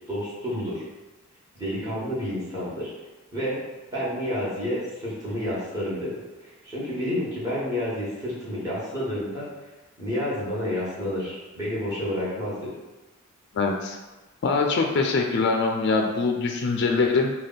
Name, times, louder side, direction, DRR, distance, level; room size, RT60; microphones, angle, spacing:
voice 1, 0.1-0.8 1.5-2.9 3.3-3.6 3.9-6.1 6.4-9.5 10.0-12.7, left 1 dB, 15° right, -10 dB, 1.4 m, -29 dB
voice 2, 13.5-14.0 14.4-17.3, left 4 dB, 50° left, 2 dB, 0.3 m, -23 dB
3.3 x 2.3 x 4.0 m, 1.2 s
head